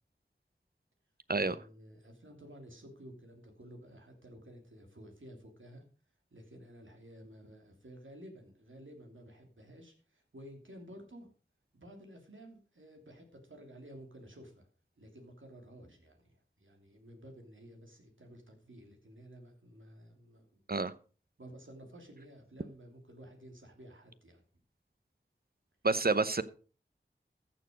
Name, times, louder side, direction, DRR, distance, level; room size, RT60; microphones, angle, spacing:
voice 1, 1.4-5.8 6.3-11.3 11.7-14.7 15.0-20.6 21.4-24.4, equal, 85° right, 3.0 m, -53 dB
voice 2, 25.8-26.4, right 3 dB, 50° right, 0.9 m, -28 dB
14.0 x 7.0 x 5.2 m
wide cardioid pair, 45°, 20 cm